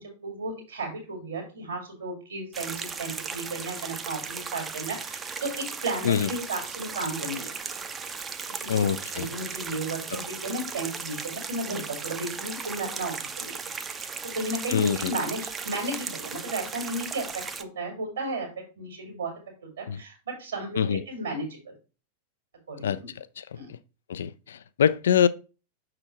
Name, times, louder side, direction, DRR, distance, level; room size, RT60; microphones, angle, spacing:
voice 1, 0.0-7.5 8.6-8.7 9.1-13.5 14.0-19.3 19.6-21.7 22.7-23.1 23.6-23.7, right 2 dB, 70° right, 2.2 m, -34 dB
sound 1, 2.5-17.6, right 5 dB, 20° right, 0.6 m, -36 dB
voice 2, 8.7-9.3 14.7-15.1 19.9-20.0 20.8-21.0 22.8-23.4 24.1-25.3, left 8 dB, 65° left, 0.3 m, -24 dB
6.1 x 3.9 x 4.4 m
figure-of-eight pair, 90°, 0 cm